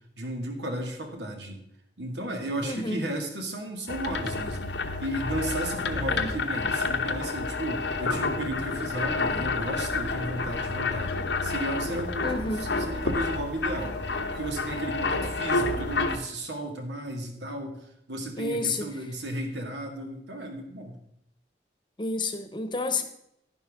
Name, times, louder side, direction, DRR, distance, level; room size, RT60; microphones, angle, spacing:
voice 1, 0.2-1.6 2.0-11.2 11.4-14.0 14.3-21.0, right 1 dB, 80° right, 3 dB, 2.1 m, -34 dB
voice 2, 2.6-3.0 6.1-6.3 12.2-12.7 18.4-18.9 22.0-23.0, left 3 dB, 25° left, 8 dB, 1.0 m, -30 dB
sound 1, 3.9-16.2, left 3 dB, 85° left, 1.0 m, -29 dB
11.5 x 10.5 x 3.7 m, 0.78 s
head